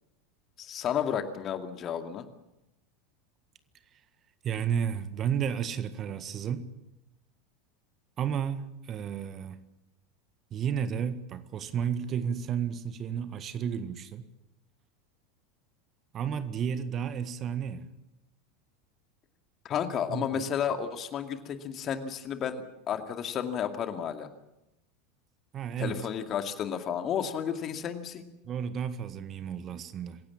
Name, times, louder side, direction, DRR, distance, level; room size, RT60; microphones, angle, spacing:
voice 1, 0.6-2.3 19.6-24.3 25.8-28.3, left 8 dB, 35° left, 2.3 m, -32 dB
voice 2, 4.4-6.7 8.2-9.6 10.5-14.3 16.1-17.9 20.1-20.5 25.5-26.0 28.4-30.2, right 8 dB, 35° right, 1.7 m, -32 dB
27.0 x 16.5 x 7.4 m
figure-of-eight pair, 80°, 0 cm